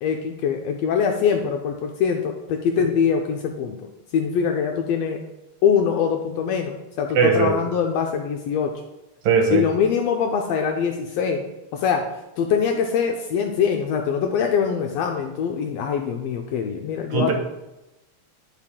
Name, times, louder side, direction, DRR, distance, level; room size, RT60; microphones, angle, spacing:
voice 1, 0.0-5.2 5.6-8.7 9.5-11.4 11.7-12.1 12.4-17.3, left 7 dB, 80° left, 3 dB, 1.5 m, -23 dB
voice 2, 7.2-7.5 9.3-9.6 17.1-17.3, right 5 dB, 70° right, 2 dB, 2.4 m, -18 dB
10.5 x 4.5 x 3.6 m, 0.97 s
omnidirectional pair, 3.4 m